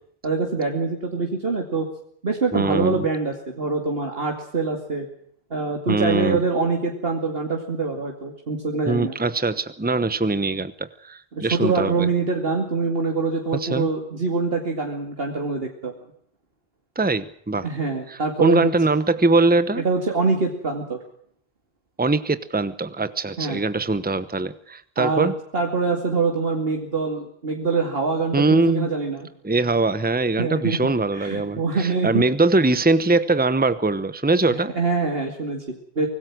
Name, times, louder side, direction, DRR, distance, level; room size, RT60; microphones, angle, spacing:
voice 1, 0.2-1.9 2.2-5.1 5.5-9.2 11.3-15.9 17.6-18.7 19.8-21.0 23.4-23.6 25.0-29.3 30.4-30.8 31.1-32.2 34.5-36.1, right 4 dB, 70° right, 2 dB, 2.7 m, -24 dB
voice 2, 2.5-3.1 5.9-6.4 8.9-12.1 13.6-13.9 17.0-17.7 18.1-19.8 22.0-25.3 28.3-28.9 29.4-34.7, right 3 dB, 10° right, 14 dB, 1.0 m, -22 dB
25.0 x 19.0 x 6.1 m, 0.65 s
omnidirectional pair, 1.0 m